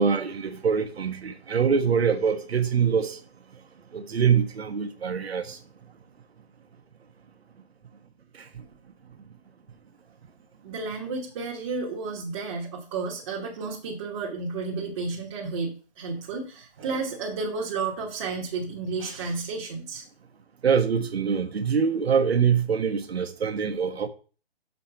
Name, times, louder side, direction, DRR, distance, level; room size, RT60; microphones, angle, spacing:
voice 1, 0.0-3.2 3.9-5.6 20.6-24.1, right 6 dB, 70° right, 1.3 m, -24 dB
voice 2, 10.6-20.1, right 4 dB, 30° right, 1.4 m, -32 dB
6.8 x 4.4 x 6.7 m
hypercardioid pair, 155°, 32 cm